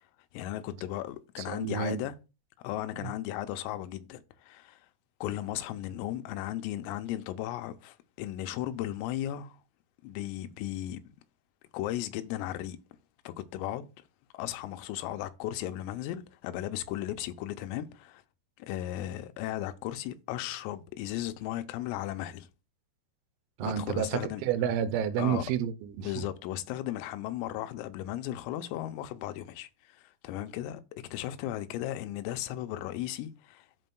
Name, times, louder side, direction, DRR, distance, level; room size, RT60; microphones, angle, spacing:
voice 1, 0.3-2.1 2.6-4.8 5.2-9.6 10.0-11.0 11.7-12.8 13.3-13.9 14.3-18.2 18.7-22.5 23.6-24.4 25.2-25.4 26.0-30.8 31.1-33.7, left 13 dB, 85° left, 3.4 m, -36 dB
voice 2, 1.5-2.0 3.0-3.1 23.6-26.3, right 9 dB, 90° right, 3.4 m, -30 dB
13.0 x 5.3 x 2.2 m
omnidirectional pair, 5.9 m